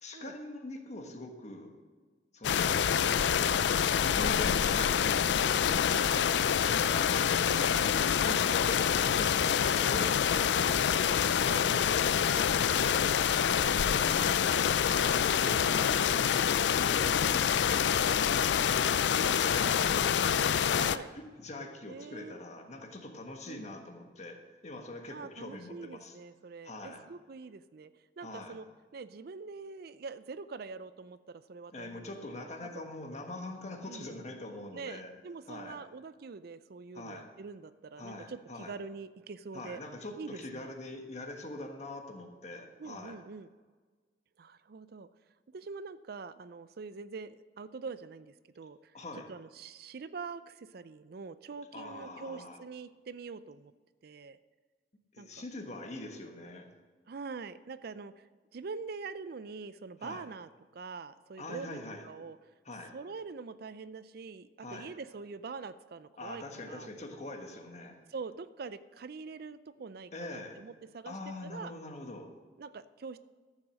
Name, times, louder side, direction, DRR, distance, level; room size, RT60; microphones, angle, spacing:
voice 1, 0.0-1.7 2.3-2.8 3.8-6.9 8.2-13.4 14.0-16.3 16.7-18.1 18.6-20.1 20.7-26.2 26.6-27.0 28.2-28.5 31.7-35.1 35.5-35.8 36.9-37.3 38.0-38.7 39.5-43.2 48.9-49.3 51.7-52.6 55.1-56.7 60.0-60.3 61.4-62.0 62.6-63.0 64.6-64.9 66.2-68.0 70.1-70.6 71.0-72.3, left 2 dB, 40° left, 4 dB, 1.5 m, -43 dB
sound 1, 2.4-21.0, left 8 dB, 80° left, 0.4 m, -26 dB
voice 2, 7.5-8.1 11.5-11.9 13.9-14.1 17.2-17.4 19.6-20.2 20.8-21.1 21.9-22.4 23.5-23.6 25.1-27.9 28.2-28.7 28.9-32.8 33.9-34.2 34.7-39.8 40.2-40.7 42.8-43.5 44.4-45.1 45.5-48.9 49.3-53.7 54.0-54.4 55.2-55.3 57.1-58.3 58.5-61.8 62.0-62.4 62.9-66.9 68.1-71.1 71.4-71.7 72.6-73.2, right 4 dB, 60° right, 14 dB, 0.5 m, -44 dB
13.5 x 7.3 x 6.3 m, 1.5 s
head